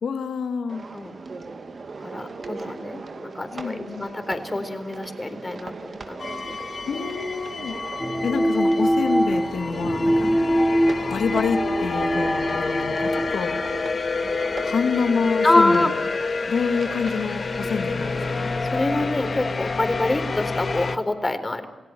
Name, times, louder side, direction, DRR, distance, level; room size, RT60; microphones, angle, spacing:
voice 1, 0.0-0.8 3.5-4.1 6.9-7.7 8.2-10.3 11.1-13.6 14.6-15.9 16.5-18.5, left 5 dB, 75° left, 6 dB, 2.6 m, -27 dB
sound 1, 0.7-19.3, right 4 dB, 55° right, 2.4 m, -39 dB
voice 2, 2.1-6.3 6.6-6.7 10.1-10.4 15.4-15.9 18.6-21.7, left 2 dB, 25° left, 8 dB, 3.9 m, -25 dB
sound 2, 6.2-21.0, left 4 dB, 50° left, 1.9 m, -29 dB
sound 3, 8.0-13.3, equal, ahead, 1.5 m, -23 dB
29.5 x 16.5 x 8.9 m, 1.1 s
cardioid pair, 60°, 0 cm